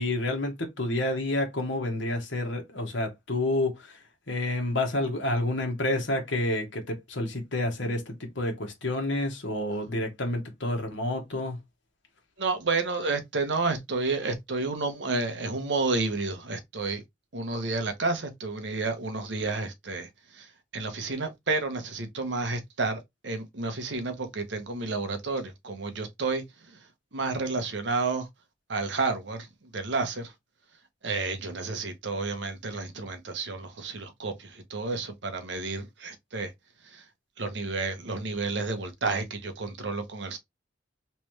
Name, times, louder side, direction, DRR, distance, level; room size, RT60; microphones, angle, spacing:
voice 1, 0.0-4.0 4.3-11.6, left 1 dB, 75° left, 1.3 m, -29 dB
voice 2, 12.4-17.0 17.3-20.1 20.3-26.8 27.1-28.3 28.7-29.5 29.7-30.3 31.0-36.5 36.8-37.0 37.4-40.4, right 3 dB, 70° right, 0.9 m, -31 dB
3.3 x 3.2 x 3.1 m
head